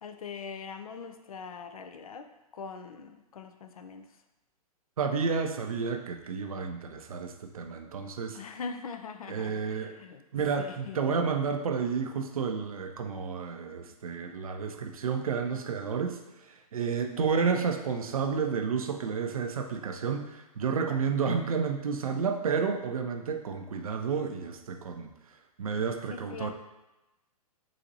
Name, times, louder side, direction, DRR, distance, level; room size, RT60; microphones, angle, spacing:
voice 1, 0.0-4.1 8.3-10.2 10.6-11.1 17.2-17.6 26.1-26.5, left 5 dB, 70° left, 7 dB, 0.4 m, -42 dB
voice 2, 5.0-8.4 9.3-10.0 10.3-16.2 16.7-25.1 25.6-26.5, right 5 dB, 65° right, 5 dB, 0.5 m, -31 dB
4.0 x 2.8 x 2.6 m, 0.99 s
figure-of-eight pair, 115°, 19 cm